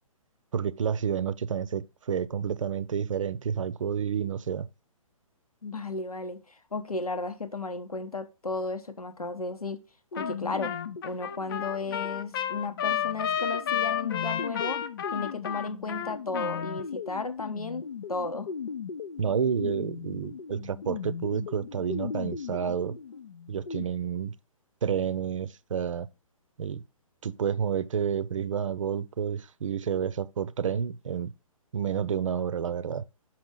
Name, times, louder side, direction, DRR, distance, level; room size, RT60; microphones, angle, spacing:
voice 1, 0.5-4.7 19.2-23.0 23.5-24.4 24.8-26.1 26.6-26.8 27.2-31.3 31.7-33.0, right 7 dB, 60° right, 0.6 m, -30 dB
voice 2, 5.6-9.8 10.1-10.7 11.0-14.8 15.1-18.5, left 3 dB, 90° left, 1.0 m, -34 dB
sound 1, 10.1-23.8, left 6 dB, 70° left, 0.6 m, -39 dB
Trumpet, 10.2-10.4 10.6-16.8, left 9 dB, 40° left, 0.7 m, -31 dB
6.1 x 5.9 x 3.7 m
figure-of-eight pair, 130°, 18 cm